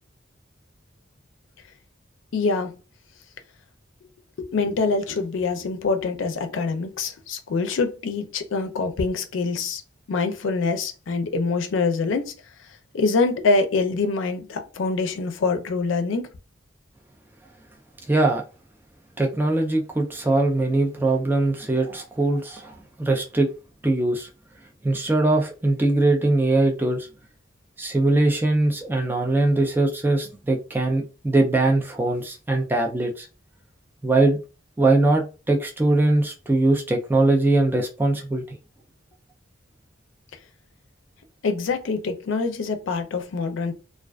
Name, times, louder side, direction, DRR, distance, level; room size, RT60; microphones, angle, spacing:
voice 1, 2.3-2.7 4.4-9.8 10.1-12.3 12.9-16.3 41.4-43.7, left 4 dB, 75° left, 0.4 m, -25 dB
voice 2, 18.1-18.4 19.2-23.5 23.8-24.3 24.8-27.1 27.8-33.3 34.0-34.4 34.8-38.6, right 2 dB, 10° right, 0.3 m, -21 dB
2.4 x 2.2 x 2.3 m
head